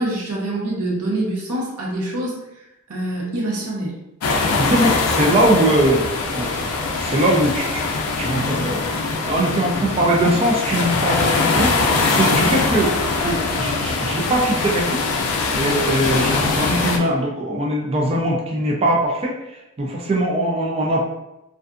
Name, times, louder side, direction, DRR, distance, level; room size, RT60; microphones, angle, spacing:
voice 1, 0.0-2.4 2.9-3.9, right 1 dB, 80° right, -3 dB, 0.7 m, -25 dB
sound 1, 4.2-17.0, left 3 dB, 90° left, 0.4 m, -22 dB
voice 2, 4.6-6.1 6.3-6.7 7.0-7.9 8.2-8.8 9.2-12.9 13.2-15.1 15.5-21.0, right 1 dB, 25° right, -1 dB, 0.3 m, -21 dB
2.5 x 2.3 x 2.4 m, 0.92 s
head